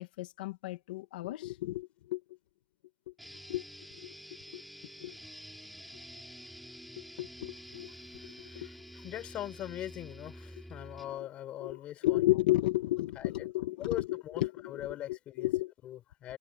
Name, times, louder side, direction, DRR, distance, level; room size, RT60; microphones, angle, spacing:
voice 1, 0.0-2.2 3.1-3.2 3.5-3.6 3.9-4.1 4.5-4.6 5.0-5.2 7.2-7.9 8.2-8.7 11.6-14.5 15.4-15.7, left 17 dB, 50° left, 1.7 m, -32 dB
sound 1, 3.2-11.2, equal, ahead, 5.2 m, -49 dB
voice 2, 8.1-12.2 13.1-13.5 13.8-15.5 15.8-16.4, left 12 dB, 20° left, 6.2 m, -41 dB
supercardioid pair, 175°, 6 cm